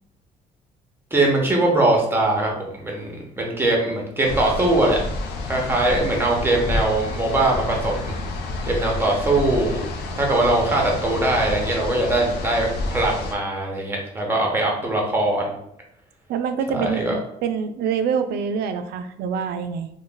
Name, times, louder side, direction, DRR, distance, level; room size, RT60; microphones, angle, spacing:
voice 1, 1.1-5.0 5.5-8.1 8.7-9.8 10.2-15.6 16.7-17.1, right 2 dB, 15° right, -1 dB, 0.9 m, -21 dB
sound 1, 4.2-13.3, left 2 dB, 75° left, 0.5 m, -29 dB
voice 2, 16.3-19.9, right 6 dB, 75° right, 9 dB, 0.4 m, -25 dB
2.4 x 2.2 x 3.8 m, 0.75 s
cardioid pair, 110°, 17 cm